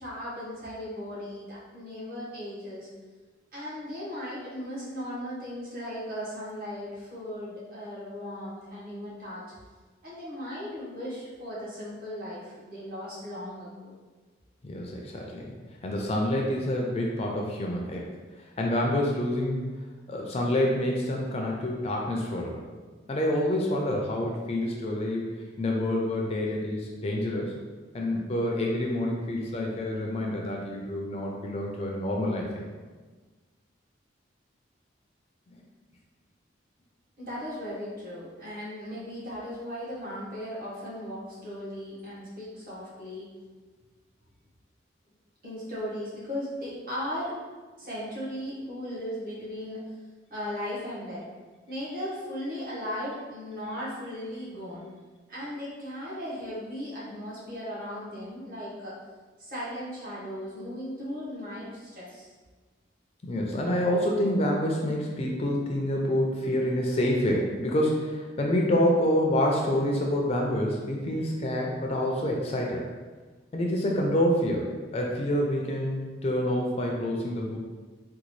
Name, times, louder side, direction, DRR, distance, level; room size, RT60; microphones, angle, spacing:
voice 1, 0.0-2.9 3.5-9.4 10.0-13.9 37.2-43.3 45.4-47.3 47.8-49.8 50.3-51.2 51.7-54.8 55.3-59.0 59.4-62.3, equal, 50° right, -8 dB, 1.2 m, -37 dB
voice 2, 14.6-15.5 15.8-18.1 18.6-19.6 20.1-22.6 23.1-25.3 25.6-27.5 27.9-32.6 63.2-72.8 73.5-77.6, left 1 dB, 30° left, 0 dB, 0.4 m, -27 dB
3.9 x 2.3 x 3.0 m, 1.4 s
head